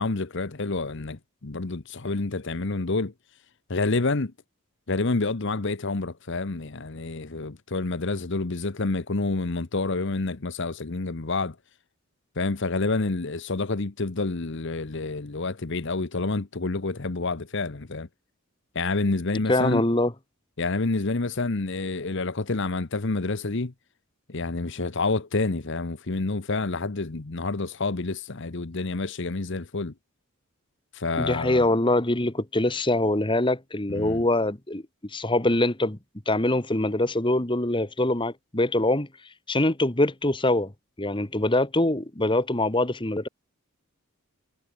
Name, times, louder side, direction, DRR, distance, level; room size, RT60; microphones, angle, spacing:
voice 1, 0.0-3.1 3.7-4.3 4.9-11.6 12.4-18.1 18.7-19.8 20.6-23.7 24.3-29.9 30.9-31.7 33.9-34.2, left 3 dB, 55° left, 1.0 m, -28 dB
voice 2, 19.5-20.1 31.2-34.8 35.1-36.0 36.2-39.1 39.5-40.7 41.0-43.3, left 1 dB, 20° left, 1.6 m, -24 dB
head